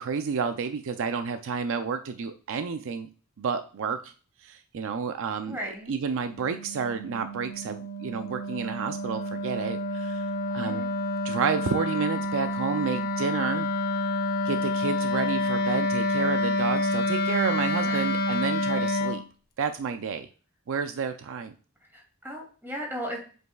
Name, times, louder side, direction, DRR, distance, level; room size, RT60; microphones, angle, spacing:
voice 1, 0.0-3.1 3.4-4.1 4.4-10.3 10.5-10.8 11.2-13.7 14.4-19.2 19.6-20.3 20.7-21.5, right 5 dB, 60° right, 8 dB, 0.4 m, -30 dB
voice 2, 5.5-5.9 10.6-10.9 17.9-18.0 21.9-23.2, equal, 10° right, -1 dB, 2.6 m, -36 dB
Wind instrument woodwind instrument, 6.3-19.2, left 1 dB, 45° left, 0.9 m, -28 dB
7.8 x 5.3 x 2.3 m, 0.39 s
head